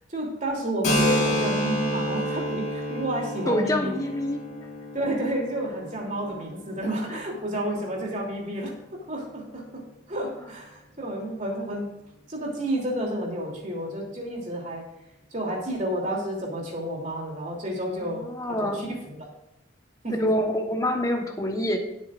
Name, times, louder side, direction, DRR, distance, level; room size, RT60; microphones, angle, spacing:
voice 1, 0.1-3.9 4.9-8.7 9.1-11.9 12.3-14.8 15.3-19.2 20.0-20.3, right 1 dB, 40° right, -1 dB, 3.1 m, -30 dB
Keyboard (musical), 0.8-8.2, equal, 40° left, 3.1 m, -30 dB
voice 2, 3.5-4.4 18.0-18.8 20.2-21.8, left 1 dB, 15° left, 2 dB, 1.1 m, -26 dB
17.5 x 8.5 x 2.5 m, 0.87 s
head